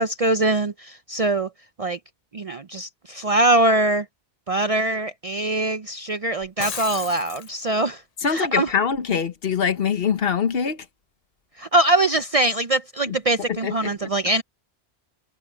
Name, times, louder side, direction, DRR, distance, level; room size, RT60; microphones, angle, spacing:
voice 1, 0.0-1.5 1.8-2.0 2.3-4.0 4.5-8.0 8.3-8.7 11.6-14.4, right 2 dB, 45° right, 0.5 m, -22 dB
Shatter, 6.4-7.5, left 6 dB, 40° left, 0.8 m, -33 dB
voice 2, 8.2-10.8 13.1-13.2 13.5-13.9, left 6 dB, 60° left, 1.2 m, -23 dB
omnidirectional pair, 1.1 m